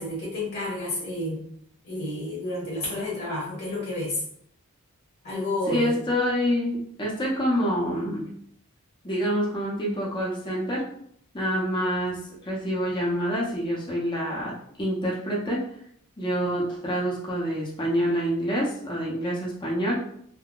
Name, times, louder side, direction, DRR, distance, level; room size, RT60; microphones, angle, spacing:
voice 1, 0.0-1.4 1.8-4.2 5.2-6.0, left 1 dB, 45° left, -6 dB, 1.2 m, -30 dB
voice 2, 5.7-8.3 9.0-10.8 11.3-12.2 12.4-14.5 14.8-15.6 16.2-20.0, equal, 20° left, -5 dB, 0.6 m, -26 dB
3.6 x 2.2 x 2.3 m, 0.67 s
head